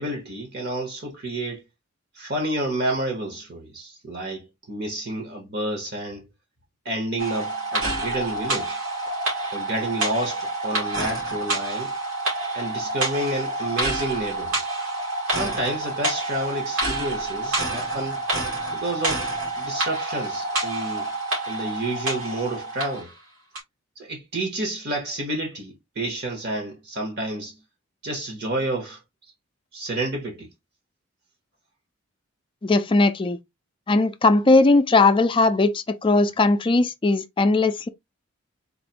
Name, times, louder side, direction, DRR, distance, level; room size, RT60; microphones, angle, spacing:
voice 1, 0.0-1.6 2.1-6.2 6.8-8.8 9.5-11.9 12.5-14.6 15.3-18.2 18.7-21.1 21.4-23.1 24.0-27.5 28.0-29.0 29.7-30.5, right 1 dB, 55° right, 1.0 m, -30 dB
sound 1, 7.2-23.1 23.5-23.6, right 2 dB, 90° right, 2.5 m, -28 dB
voice 2, 32.6-33.4 33.9-37.9, left 3 dB, 25° left, 0.4 m, -19 dB
4.0 x 2.6 x 2.8 m
head